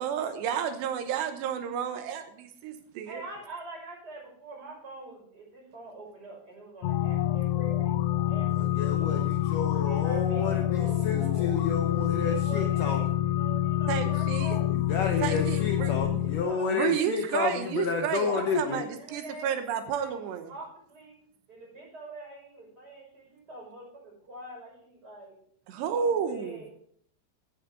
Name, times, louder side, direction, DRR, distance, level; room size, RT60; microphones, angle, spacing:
voice 1, 0.0-3.2 13.9-14.6 15.2-16.2 16.7-20.5 25.7-26.6, right 8 dB, 85° right, 7 dB, 3.2 m, -31 dB
voice 2, 3.0-7.9 8.3-9.3 9.8-11.5 12.1-14.6 15.1-15.9 16.2-17.0 17.3-17.9 18.3-19.5 20.0-20.2 20.5-21.1 21.5-25.3 25.7-26.7, right 2 dB, 25° right, -2 dB, 6.3 m, -45 dB
sound 1, 6.8-16.4, left 13 dB, 90° left, 2.7 m, -27 dB
voice 3, 8.6-13.0 14.7-18.8, left 5 dB, 70° left, 3 dB, 2.1 m, -31 dB
14.0 x 8.9 x 3.8 m, 0.63 s
omnidirectional pair, 4.8 m